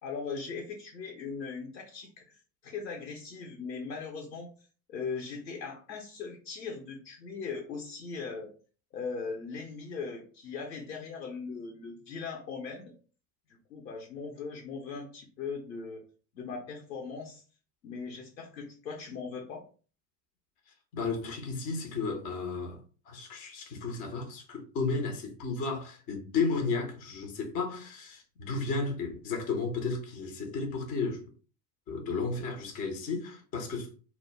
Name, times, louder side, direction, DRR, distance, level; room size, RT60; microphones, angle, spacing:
voice 1, 0.0-4.5 4.9-8.5 8.9-12.9 13.7-16.0 16.3-17.4 17.8-19.6, left 5 dB, 90° left, 0.6 m, -39 dB
voice 2, 20.9-22.8 23.1-31.2 31.9-33.9, left 4 dB, 20° left, 0.4 m, -33 dB
2.2 x 2.0 x 3.2 m
figure-of-eight pair, 85°, 50 cm